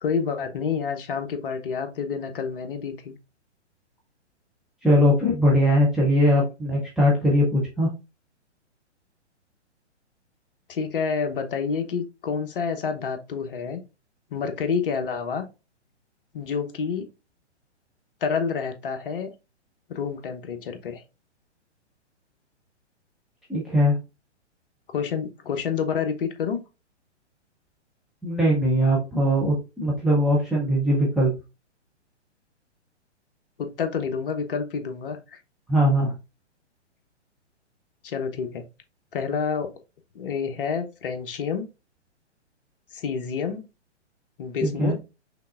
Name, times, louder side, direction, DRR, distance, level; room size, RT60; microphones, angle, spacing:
voice 1, 0.0-3.1 10.7-13.8 14.3-15.4 16.3-17.1 18.2-19.3 19.9-21.0 24.9-26.6 33.6-35.4 38.0-38.6 39.1-39.7 40.1-41.7 42.9-43.7 44.4-45.0, left 6 dB, 50° left, 1.0 m, -28 dB
voice 2, 4.8-7.9 23.5-23.9 28.2-31.3 35.7-36.1 44.6-45.0, equal, ahead, 0.5 m, -20 dB
5.7 x 3.4 x 2.4 m
figure-of-eight pair, 125°, 36 cm